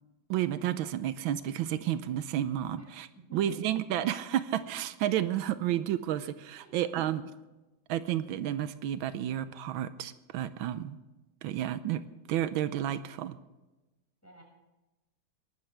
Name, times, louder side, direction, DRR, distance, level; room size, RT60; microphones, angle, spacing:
voice 1, 0.3-3.1 3.3-7.2 7.9-11.0 11.4-12.0 12.3-13.4, right 11 dB, 85° right, 13 dB, 1.4 m, -31 dB
voice 2, 3.1-3.6 6.6-7.1 14.2-14.4, right 4 dB, 5° left, -2 dB, 6.1 m, -49 dB
21.5 x 12.5 x 3.4 m, 1.1 s
omnidirectional pair, 2.2 m